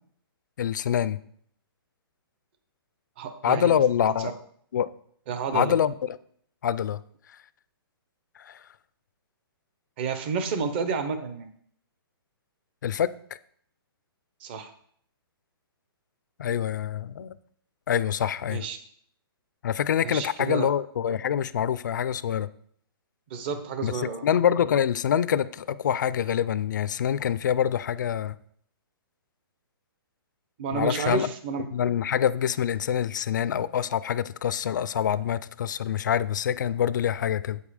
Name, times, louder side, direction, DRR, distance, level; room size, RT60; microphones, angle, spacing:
voice 1, 0.6-1.2 3.4-4.3 4.7-4.9 5.5-6.2 6.6-7.0 7.3-7.4 8.4-8.6 12.8-13.1 16.4-17.4 17.9-18.6 19.6-22.5 23.8-28.4 30.7-31.3 31.7-37.6, left 9 dB, 50° left, 16 dB, 0.4 m, -25 dB
voice 2, 3.2-3.8 4.2-4.3 5.3-5.7 10.0-11.5 14.4-14.7 18.5-18.8 20.0-20.7 23.3-24.2 30.6-31.6, right 5 dB, 25° right, 8 dB, 0.7 m, -30 dB
8.4 x 5.4 x 4.9 m, 0.64 s
hypercardioid pair, 170°, 13 cm